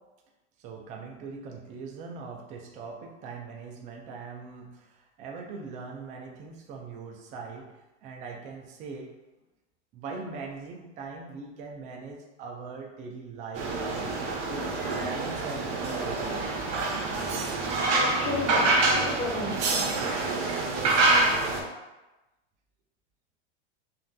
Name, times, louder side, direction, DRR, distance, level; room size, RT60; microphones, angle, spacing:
voice 1, 0.6-7.7 8.0-9.1 9.9-16.6 20.5-21.1, right 4 dB, 25° right, 1 dB, 0.3 m, -41 dB
sound 1, 13.5-21.6, right 2 dB, 75° right, 0.8 m, -26 dB
voice 2, 17.9-19.9, left 2 dB, 20° left, -6 dB, 0.9 m, -32 dB
3.8 x 2.4 x 2.2 m, 1.1 s
supercardioid pair, 130°, 35 cm